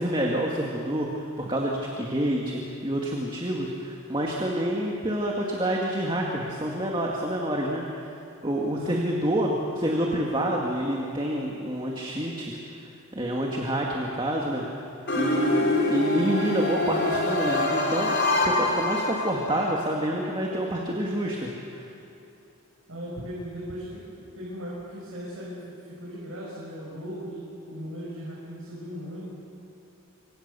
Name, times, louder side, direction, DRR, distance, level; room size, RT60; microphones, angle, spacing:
voice 1, 0.0-7.8 8.4-12.5 13.1-14.6 15.1-18.2 18.4-21.9, right 1 dB, 20° right, -1 dB, 2.1 m, -28 dB
voice 2, 8.7-9.4 22.9-29.3, equal, 70° right, -6 dB, 6.4 m, -38 dB
sound 1, 15.1-19.7, left 1 dB, 50° left, 4.2 m, -25 dB
27.5 x 25.5 x 6.9 m, 2.8 s
head